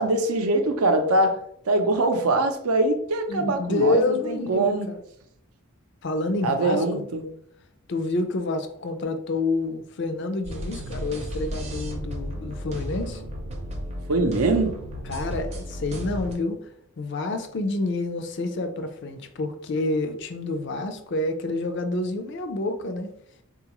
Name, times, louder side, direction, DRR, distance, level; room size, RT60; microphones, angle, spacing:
voice 1, 0.0-4.9 6.4-7.2 14.1-14.8, right 2 dB, 85° right, 0.5 m, -23 dB
voice 2, 3.3-5.0 6.0-7.0 7.9-13.2 15.1-16.6 17.0-23.1, left 2 dB, 50° left, 0.4 m, -28 dB
sound 1, 10.4-16.3, equal, 30° right, 0.5 m, -34 dB
3.7 x 2.3 x 2.9 m
head